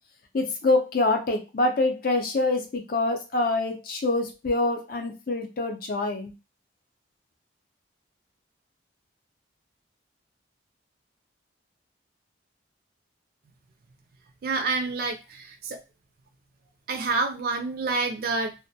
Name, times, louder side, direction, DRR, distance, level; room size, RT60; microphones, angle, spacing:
voice 1, 0.3-6.3, left 2 dB, 50° left, 4 dB, 0.5 m, -25 dB
voice 2, 14.4-15.8 16.9-18.5, right 3 dB, 50° right, 4 dB, 0.3 m, -28 dB
2.1 x 2.1 x 2.7 m, 0.27 s
head